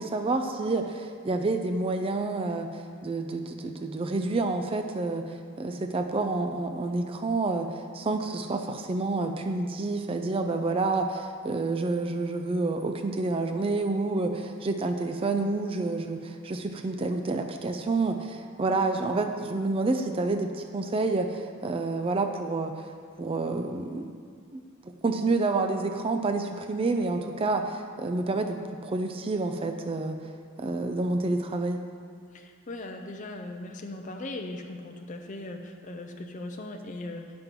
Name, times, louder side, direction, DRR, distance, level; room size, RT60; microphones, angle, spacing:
voice 1, 0.0-22.9 23.2-24.1 24.5-30.3 30.6-31.8, right 3 dB, 25° right, 6 dB, 0.4 m, -29 dB
voice 2, 32.3-37.4, left 2 dB, 35° left, 3 dB, 0.5 m, -39 dB
8.9 x 5.2 x 5.9 m, 2.1 s
head